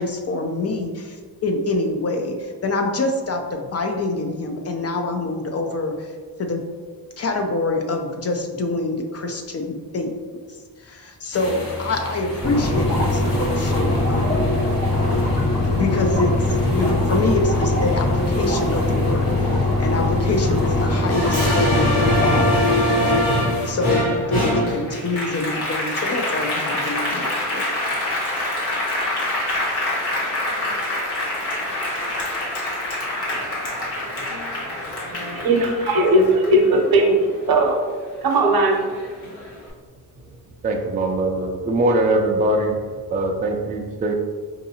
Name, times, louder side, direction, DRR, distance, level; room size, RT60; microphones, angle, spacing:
voice 1, 0.0-6.6 7.2-10.1 10.8-14.5 15.7-22.4 22.9-23.2 23.7-27.6, left 2 dB, 40° left, 4 dB, 0.4 m, -26 dB
sound 1, 11.3-23.7, left 1 dB, 60° left, 1.1 m, -33 dB
sound 2, 12.4-22.4, left 2 dB, 25° left, 1.1 m, -21 dB
Applause, 21.1-37.9 38.3-39.5, left 1 dB, 75° left, 1.3 m, -24 dB
voice 2, 35.3-37.8 38.2-38.9, right 1 dB, 65° right, 2 dB, 0.7 m, -18 dB
voice 3, 40.6-44.1, right 1 dB, 20° right, 1 dB, 0.3 m, -22 dB
4.7 x 2.6 x 2.7 m, 1.5 s
cardioid pair, 110°, 39 cm